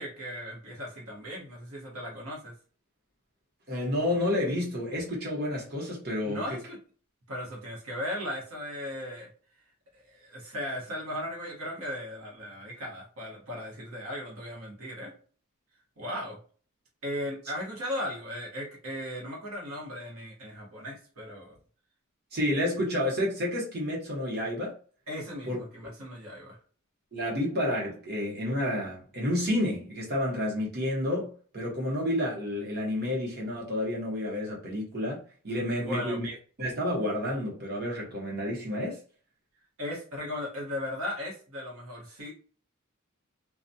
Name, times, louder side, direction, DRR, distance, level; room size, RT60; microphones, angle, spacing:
voice 1, 0.0-2.5 6.2-6.8 7.3-9.3 10.1-15.1 16.0-16.4 17.0-21.6 25.1-26.6 35.8-36.2 39.8-42.3, left 1 dB, 70° right, 1.0 m, -37 dB
voice 2, 3.7-6.4 22.3-24.7 25.4-25.6 27.1-36.3 36.6-39.0, left 1 dB, 50° right, 1.0 m, -30 dB
2.3 x 2.2 x 2.6 m
head